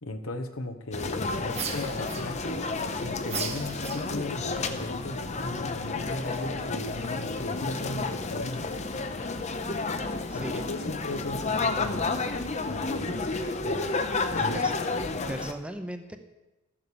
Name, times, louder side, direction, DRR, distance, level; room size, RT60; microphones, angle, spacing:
voice 1, 0.0-2.7 3.0-8.7 10.3-12.1 12.7-13.4 13.7-14.6, left 2 dB, 80° left, 8 dB, 1.2 m, -36 dB
sound 1, 0.9-15.5, left 3 dB, 35° left, 0.8 m, -31 dB
sound 2, 1.5-2.7 3.2-4.4, right 6 dB, 30° right, 1.1 m, -36 dB
voice 2, 10.3-10.6 14.5-14.7 15.3-16.2, right 1 dB, 5° right, 7 dB, 0.7 m, -37 dB
13.0 x 7.7 x 6.9 m, 1.0 s
head